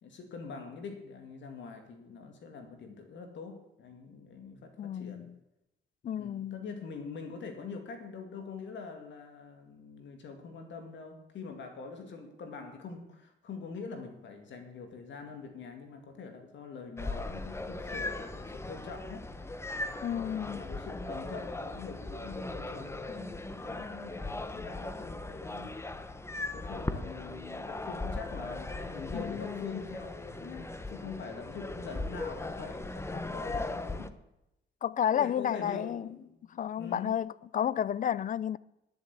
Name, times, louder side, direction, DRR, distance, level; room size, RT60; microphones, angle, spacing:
voice 1, 0.0-5.3 6.1-19.3 20.3-25.7 26.3-34.2 35.1-37.2, left 4 dB, 65° left, 2.3 m, -44 dB
voice 2, 4.8-5.3 6.0-6.6 20.0-20.6 29.1-29.8 34.8-36.1 36.6-38.6, left 9 dB, 40° left, 0.4 m, -32 dB
sound 1, 17.0-34.1, left 2 dB, 15° left, 0.9 m, -38 dB
11.0 x 7.6 x 8.4 m
cardioid pair, 90°, 20 cm